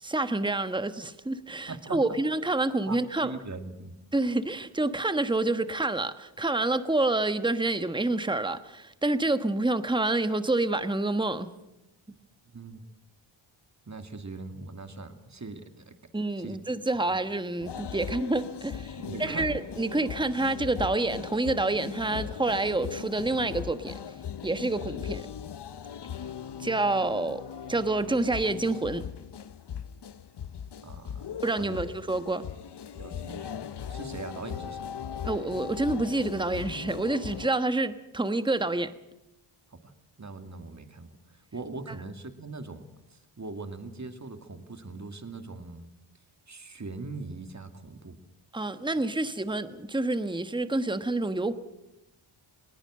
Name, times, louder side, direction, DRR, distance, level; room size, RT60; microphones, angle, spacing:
voice 1, 0.0-3.3 4.1-11.5 16.1-24.0 24.4-25.3 26.6-27.4 27.7-29.0 31.4-32.4 35.2-38.9 48.5-51.5, right 2 dB, 10° right, 11 dB, 1.2 m, -28 dB
voice 2, 1.7-2.2 2.9-3.9 12.1-12.2 12.5-12.8 13.9-16.0 16.4-16.6 19.0-19.5 30.8-31.8 33.0-34.8 39.7-39.9 40.2-45.9 46.5-48.2, right 3 dB, 35° right, 7 dB, 2.4 m, -41 dB
sound 1, 17.6-37.5, left 8 dB, 55° left, 0.8 m, -39 dB
20.0 x 18.5 x 7.7 m, 0.93 s
cardioid pair, 60°, 50 cm